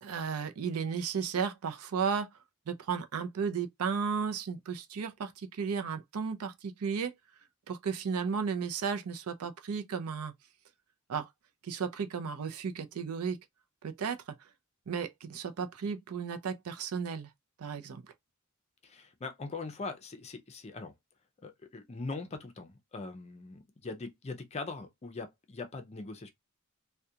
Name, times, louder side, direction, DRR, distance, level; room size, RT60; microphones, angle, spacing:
voice 1, 0.0-2.3 2.7-7.1 7.7-10.3 11.1-11.3 11.6-13.4 13.8-14.2 14.9-17.3 17.6-18.0, right 6 dB, 85° right, 0.5 m, -34 dB
voice 2, 18.8-20.9 21.4-26.3, left 3 dB, 30° left, 0.5 m, -41 dB
2.4 x 2.2 x 2.7 m
head